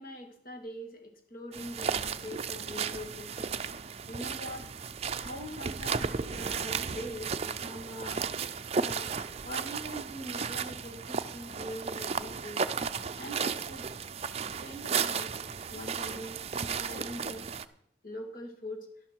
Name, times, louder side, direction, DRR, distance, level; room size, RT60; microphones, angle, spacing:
voice 1, 0.0-3.7 4.1-4.7 5.2-8.2 8.7-9.1 9.4-12.6 13.2-13.9 14.2-15.3 15.7-17.5 18.0-18.9, equal, 50° left, 2 dB, 2.3 m, -43 dB
sound 1, 1.5-17.7, right 6 dB, 35° right, 0.5 m, -34 dB
11.5 x 11.5 x 4.6 m, 0.70 s
head